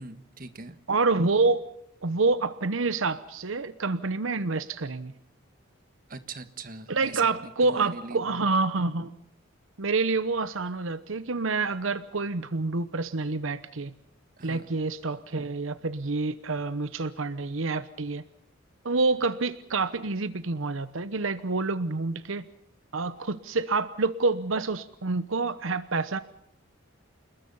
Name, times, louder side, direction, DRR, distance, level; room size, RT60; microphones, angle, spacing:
voice 1, 0.0-0.8 6.1-8.5 14.4-14.7, right 3 dB, 40° right, 11 dB, 1.5 m, -41 dB
voice 2, 0.9-1.6 2.0-5.1 6.9-9.1 9.8-13.9 14.4-18.2 18.8-22.5 22.9-26.2, right 3 dB, 75° right, 13 dB, 0.9 m, -27 dB
29.0 x 20.5 x 5.5 m, 0.73 s
head